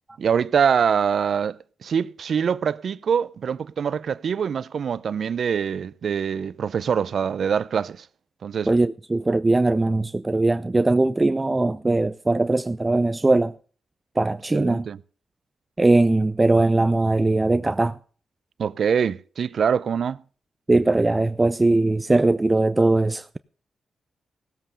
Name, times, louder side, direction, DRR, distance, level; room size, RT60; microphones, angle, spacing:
voice 1, 0.2-8.0 8.4-8.7 14.5-15.0 18.6-20.2, right 7 dB, 70° right, 0.5 m, -24 dB
voice 2, 8.7-13.5 14.2-14.9 15.8-18.0 20.7-23.4, right 2 dB, 25° right, 0.5 m, -20 dB
17.0 x 7.7 x 6.8 m
supercardioid pair, 50°, 0 cm